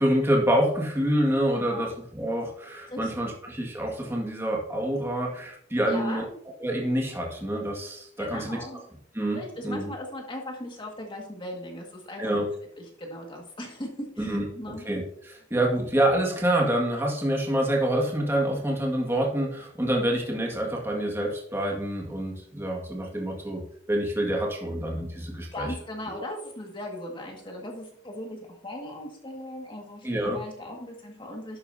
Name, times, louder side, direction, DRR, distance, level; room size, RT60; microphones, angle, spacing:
voice 1, 0.0-6.2 6.6-8.6 9.1-9.9 12.2-12.5 14.2-23.6 23.9-25.7 30.0-30.4, right 1 dB, 15° right, -1 dB, 1.8 m, -27 dB
voice 2, 1.5-1.9 2.9-3.3 5.8-6.4 8.2-8.8 9.3-12.5 12.8-13.9 14.2-14.9 25.5-31.6, left 1 dB, 25° left, 0 dB, 1.9 m, -38 dB
11.5 x 8.6 x 2.7 m, 0.66 s
head